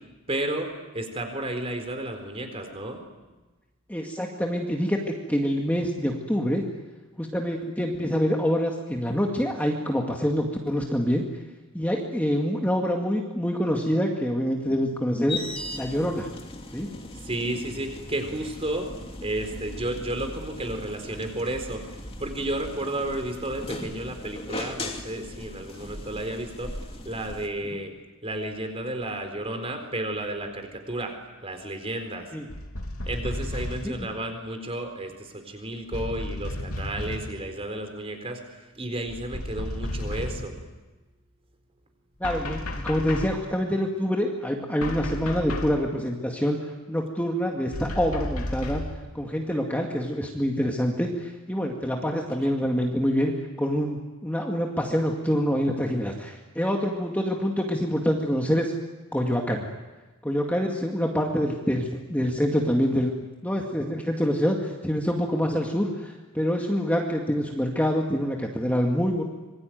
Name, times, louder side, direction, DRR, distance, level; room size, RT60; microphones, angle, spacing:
voice 1, 0.3-3.0 17.2-18.9 19.2-21.9 22.2-26.8 27.0-27.9 28.2-31.2 31.4-32.3 33.1-40.5, right 1 dB, 25° right, 5 dB, 4.3 m, -32 dB
voice 2, 3.9-6.6 7.2-11.3 11.7-15.4 15.7-16.3 16.7-16.9 27.7-27.8 32.3-32.4 33.8-34.1 42.2-46.6 46.9-48.8 49.1-53.3 53.6-58.7 59.1-59.7 60.2-69.2, equal, 5° left, 0 dB, 2.1 m, -26 dB
sound 1, 15.3-27.5, left 2 dB, 25° left, 2.6 m, -38 dB
sound 2, 32.5-34.0 35.9-37.4 39.1-40.6 42.2-43.5 44.8-45.8 47.7-49.0, left 1 dB, 75° left, 3.3 m, -33 dB
26.5 x 23.0 x 9.4 m, 1.2 s
head